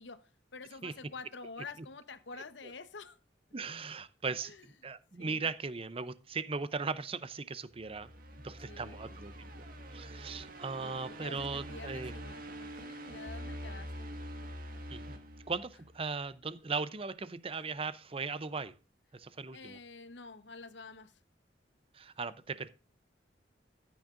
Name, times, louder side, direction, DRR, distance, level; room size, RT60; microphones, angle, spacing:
voice 1, 0.0-3.2 4.4-4.7 5.2-5.5 8.7-9.2 10.8-14.1 17.5-17.7 19.5-21.2, left 4 dB, 85° left, 1.0 m, -48 dB
voice 2, 3.5-4.5 4.8-8.1 8.4-9.5 9.9-12.1 14.9-15.2 15.5-18.7 19.1-19.8 21.9-22.7, right 4 dB, 30° right, 0.6 m, -38 dB
sound 1, 7.8-16.1, equal, 50° right, 1.6 m, -45 dB
14.0 x 8.9 x 2.5 m
head